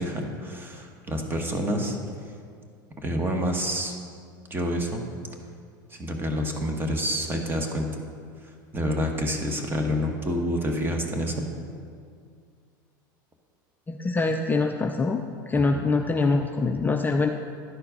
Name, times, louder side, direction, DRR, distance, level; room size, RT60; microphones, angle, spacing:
voice 1, 0.0-2.0 3.0-4.0 4.5-5.0 5.9-7.9 8.7-11.5 15.7-15.8, equal, 20° right, 3 dB, 1.2 m, -28 dB
voice 2, 13.9-15.2 15.5-17.3, left 3 dB, 15° left, 4 dB, 0.4 m, -24 dB
11.0 x 4.5 x 5.0 m, 2.2 s
hypercardioid pair, 100°, 11 cm